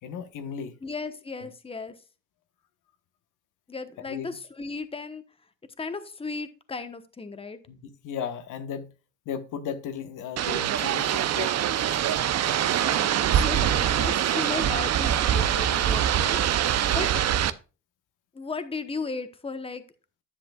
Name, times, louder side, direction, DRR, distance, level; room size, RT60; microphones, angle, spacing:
voice 1, 0.0-0.7 1.4-1.5 4.0-4.4 7.7-8.9 9.2-11.5 16.9-17.1, left 7 dB, 85° left, 1.2 m, -36 dB
voice 2, 0.8-2.0 3.7-5.2 5.8-7.6 12.8-17.1 17.3-17.5 18.3-19.8, left 4 dB, 20° left, 1.0 m, -36 dB
sound 1, 10.4-17.5, right 10 dB, 60° right, 0.6 m, -24 dB
10.0 x 7.8 x 2.3 m
cardioid pair, 90°, 30 cm